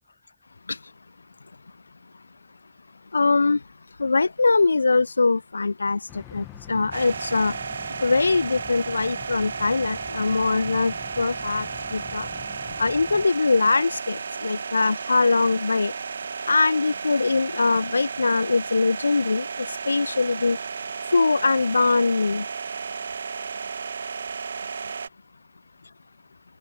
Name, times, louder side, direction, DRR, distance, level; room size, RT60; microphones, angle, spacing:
voice 1, 3.1-3.6 4.0-6.0 6.3-7.5 8.0-12.3 12.8-15.9 16.5-20.6 21.1-22.4, left 3 dB, 80° left, 0.3 m, -22 dB
sound 1, 6.1-13.2, left 16 dB, 35° left, 1.4 m, -44 dB
sound 2, 6.9-25.1, right 5 dB, 75° right, 1.2 m, -33 dB
figure-of-eight pair, 90°, 0 cm